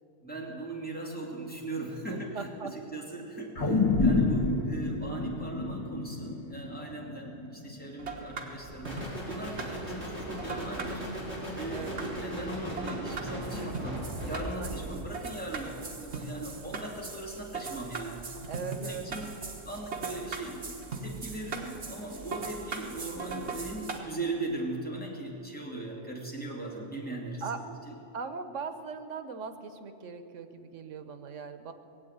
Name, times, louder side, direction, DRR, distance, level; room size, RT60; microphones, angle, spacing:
voice 1, 0.2-11.0 11.5-18.3 18.7-19.3 19.6-28.0, right 2 dB, 5° left, -3 dB, 2.6 m, -39 dB
voice 2, 2.1-2.7 11.7-12.0 14.6-14.7 18.5-19.1 27.4-27.6 28.1-31.7, right 5 dB, 90° right, 10 dB, 1.3 m, -39 dB
sound 1, 3.6-8.1 8.5-8.6, left 3 dB, 30° left, 1.9 m, -28 dB
sound 2, 8.0-24.0, right 4 dB, 65° right, 1.7 m, -40 dB
sound 3, 8.8-15.2, right 1 dB, 10° right, 4.5 m, -38 dB
18.5 x 8.1 x 9.3 m, 2.9 s
omnidirectional pair, 1.2 m